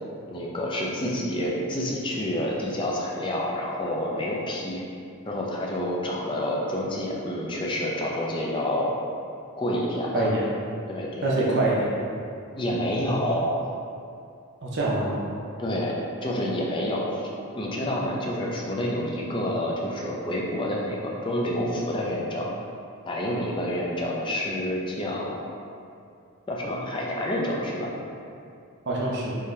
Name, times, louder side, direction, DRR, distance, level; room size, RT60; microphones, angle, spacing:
voice 1, 0.3-4.8 5.3-8.9 9.6-10.3 10.9-11.5 12.6-13.6 15.6-15.9 16.2-17.3 17.5-22.5 23.1-25.4 26.5-27.9, left 1 dB, 20° left, -3 dB, 0.4 m, -28 dB
voice 2, 10.1-10.5 11.2-11.9 14.6-15.2 28.9-29.3, right 2 dB, 50° right, -5 dB, 0.6 m, -24 dB
3.7 x 2.7 x 3.2 m, 2.5 s
head